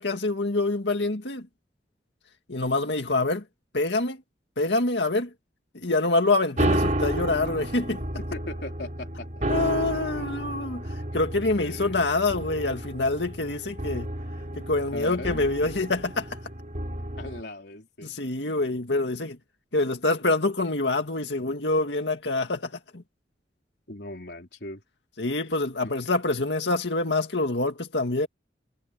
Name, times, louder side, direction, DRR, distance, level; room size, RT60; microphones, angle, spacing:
voice 1, 0.0-1.4 2.5-3.4 3.7-4.2 4.6-5.3 5.8-8.0 9.4-10.8 11.1-14.1 14.6-16.3 18.0-19.4 19.7-22.7 25.2-28.3, left 2 dB, 85° left, 2.0 m, -26 dB
sound 1, 6.6-17.4, right 1 dB, 45° right, 3.8 m, -31 dB
voice 2, 8.3-10.3 11.5-12.0 14.9-15.4 17.2-18.2 23.9-24.8 25.8-25.9, left 2 dB, 65° left, 4.2 m, -39 dB
head